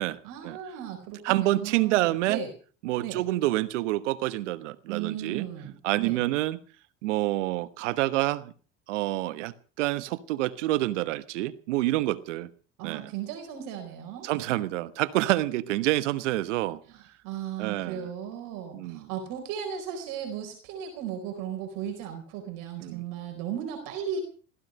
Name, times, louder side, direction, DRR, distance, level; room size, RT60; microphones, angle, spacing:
voice 1, 0.2-2.5 3.0-3.2 4.9-6.2 12.8-14.3 16.9-24.2, right 8 dB, 65° right, 5 dB, 4.4 m, -36 dB
voice 2, 1.2-2.4 2.8-5.5 5.8-6.6 7.0-8.5 8.9-12.5 12.8-13.1 14.2-16.8 17.6-18.1 18.7-19.1 22.8-23.0, right 17 dB, 80° right, 15 dB, 1.2 m, -27 dB
16.0 x 15.5 x 5.3 m, 0.39 s
hypercardioid pair, 90°, 36 cm